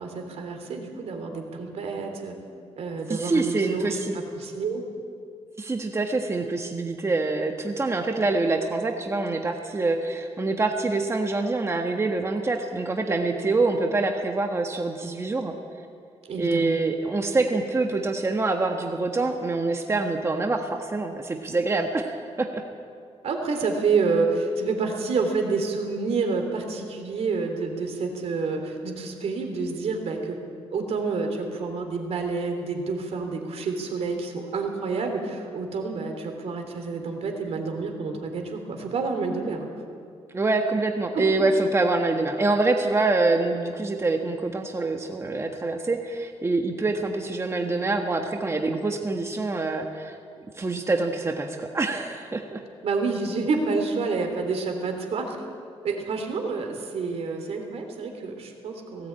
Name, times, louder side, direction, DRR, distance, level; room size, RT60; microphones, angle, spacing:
voice 1, 0.0-2.3 2.8-3.9 4.4-4.8 16.3-16.8 23.2-30.4 30.7-39.7 41.1-41.2 52.8-55.4 55.8-59.1, right 4 dB, 70° right, 4 dB, 3.3 m, -28 dB
voice 2, 3.1-4.2 5.6-15.5 16.4-22.6 40.3-50.2 50.6-52.6, right 3 dB, 25° right, 3 dB, 1.4 m, -25 dB
18.5 x 16.5 x 8.8 m, 2.3 s
cardioid pair, 120°, 11 cm